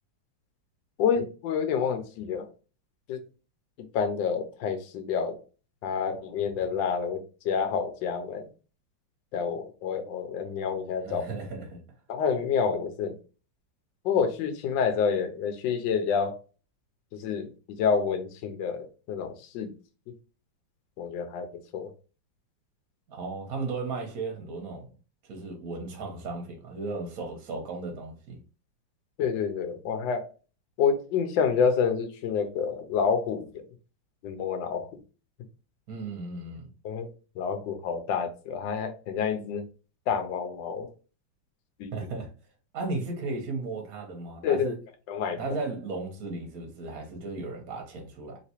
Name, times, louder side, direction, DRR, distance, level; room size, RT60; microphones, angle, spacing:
voice 1, 1.0-2.5 3.1-3.2 3.8-5.4 5.8-8.5 9.3-11.2 12.1-13.2 14.0-16.4 17.1-19.7 21.0-21.5 21.7-21.9 29.2-30.3 30.8-33.6 34.2-35.0 36.8-37.1 37.4-39.7 40.1-40.9 41.8-41.9 44.4-44.7 45.1-45.4, left 6 dB, 75° left, 1.3 m, -28 dB
voice 2, 11.0-11.8 23.1-24.9 25.2-28.4 35.9-36.7 41.9-42.3 42.7-44.7 45.4-48.4, right 3 dB, 55° right, 1.1 m, -35 dB
3.3 x 2.9 x 2.9 m
omnidirectional pair, 2.2 m